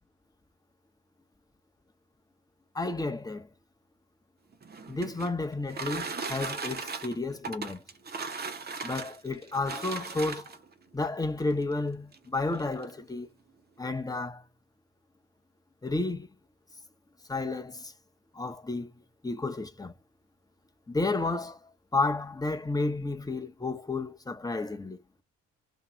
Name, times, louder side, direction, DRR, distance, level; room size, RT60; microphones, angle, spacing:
voice 1, 2.7-3.5 4.9-7.8 8.8-10.5 10.9-13.3 13.8-14.4 15.8-16.3 17.3-17.9 18.3-18.9 19.2-19.9 20.9-21.6 21.9-25.0, left 3 dB, 10° left, 0.8 m, -31 dB
sound 1, 4.5-10.7 11.6-11.7 12.1-12.2 12.5-12.9, right 4 dB, 25° right, 0.9 m, -37 dB
2.8 x 2.7 x 2.3 m
hypercardioid pair, 45°, 36 cm